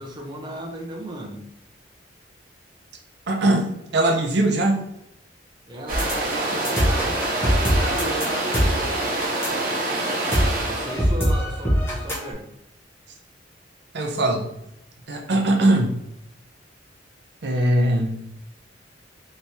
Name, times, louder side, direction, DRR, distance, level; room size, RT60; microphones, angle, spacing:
voice 1, 0.0-1.4 5.7-7.4 7.7-8.8 10.7-12.4, right 1 dB, 25° right, 0 dB, 0.8 m, -35 dB
voice 2, 3.3-4.9 13.9-14.5 15.1-15.9 17.4-18.2, right 1 dB, 65° right, 2 dB, 0.6 m, -21 dB
sound 1, 5.9-12.3, equal, 15° left, 1.2 m, -24 dB
sound 2, 5.9-11.1, right 2 dB, 50° right, 0.9 m, -26 dB
3.4 x 3.0 x 4.1 m, 0.82 s
head